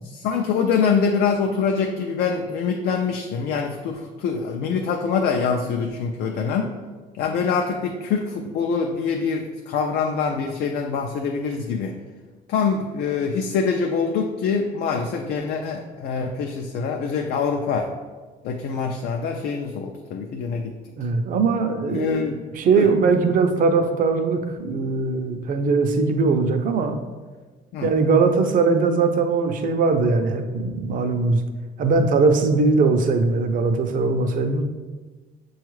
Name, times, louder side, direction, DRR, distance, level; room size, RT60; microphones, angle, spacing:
voice 1, 0.0-6.7 7.1-12.0 12.5-17.9 18.4-20.8 21.9-22.4 22.7-22.9 27.7-27.9, left 5 dB, 70° left, 3 dB, 0.4 m, -24 dB
voice 2, 21.0-22.2 22.5-27.0 27.8-31.4 31.8-34.6, right 4 dB, 55° right, 7 dB, 0.5 m, -20 dB
7.0 x 2.3 x 3.1 m, 1.3 s
cardioid pair, 110°, 17 cm